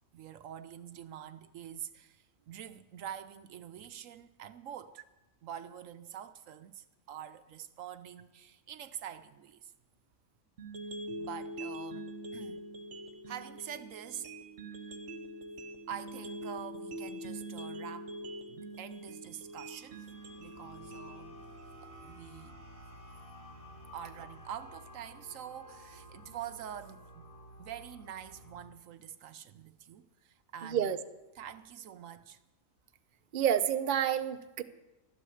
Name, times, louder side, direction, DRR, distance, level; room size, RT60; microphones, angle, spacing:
voice 1, 0.1-5.0 5.4-9.7 11.2-12.6 13.3-14.3 15.9-18.1 18.5-20.1 20.4-21.4 21.8-22.5 23.9-27.2 27.6-31.0 31.3-32.4, right 9 dB, 75° right, 1.0 m, -46 dB
sound 1, 10.6-22.6, right 1 dB, 60° right, 1.5 m, -44 dB
sound 2, 19.3-28.7, equal, 25° left, 3.1 m, -52 dB
voice 2, 33.3-34.6, right 9 dB, 45° right, 0.8 m, -29 dB
13.5 x 11.5 x 7.1 m
omnidirectional pair, 1.4 m